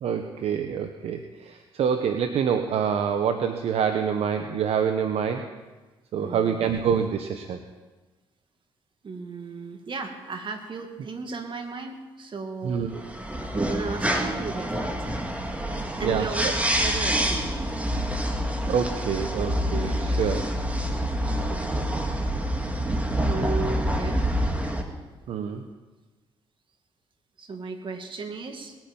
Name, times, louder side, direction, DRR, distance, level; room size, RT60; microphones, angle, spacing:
voice 1, 0.0-5.4 6.1-7.6 12.6-13.0 16.0-16.5 18.7-20.5 25.3-25.6, right 7 dB, 70° right, 7 dB, 0.9 m, -26 dB
voice 2, 6.2-6.7 9.0-12.8 13.5-15.2 16.0-16.5 16.8-17.9 21.5-22.1 23.3-24.3 27.4-28.8, right 4 dB, 50° right, 5 dB, 2.2 m, -35 dB
sound 1, 12.9-24.8, equal, 15° right, 2.1 m, -27 dB
20.0 x 9.1 x 5.4 m, 1.2 s
supercardioid pair, 60°, 11 cm